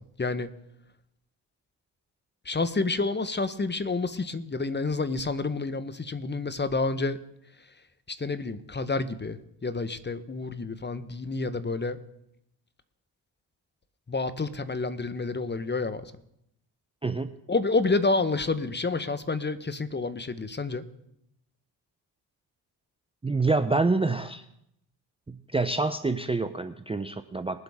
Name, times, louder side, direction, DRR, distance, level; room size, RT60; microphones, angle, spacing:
voice 1, 0.2-0.5 2.4-7.2 8.1-12.0 14.1-16.1 17.5-20.8, left 3 dB, 25° left, 13 dB, 1.0 m, -29 dB
voice 2, 17.0-17.3 23.2-24.4 25.3-27.6, right 3 dB, 10° right, 9 dB, 0.6 m, -27 dB
21.0 x 7.8 x 3.6 m, 0.77 s
supercardioid pair, 60°, 46 cm